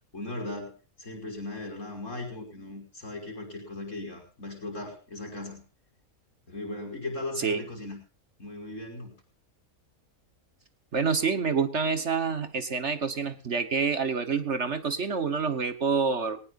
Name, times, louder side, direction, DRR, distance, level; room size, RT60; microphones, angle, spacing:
voice 1, 0.1-0.7 1.0-5.6 6.5-8.0 8.4-9.1, left 2 dB, 55° left, 2 dB, 6.2 m, -38 dB
voice 2, 10.9-16.4, right 5 dB, 55° right, 11 dB, 1.5 m, -27 dB
21.0 x 19.0 x 2.6 m, 0.34 s
omnidirectional pair, 1.5 m